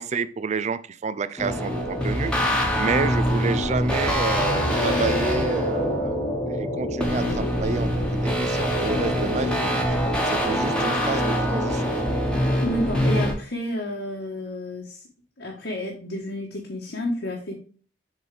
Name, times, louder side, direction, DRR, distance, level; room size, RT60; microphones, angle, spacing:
voice 1, 0.0-8.0 8.4-9.6 10.3-11.9, right 4 dB, 40° right, 15 dB, 0.4 m, -29 dB
sound 1, 1.4-13.3, equal, 5° left, 1.3 m, -24 dB
voice 2, 12.6-15.0 15.4-17.6, left 1 dB, 80° left, -2 dB, 1.3 m, -30 dB
7.2 x 3.9 x 3.4 m, 0.42 s
head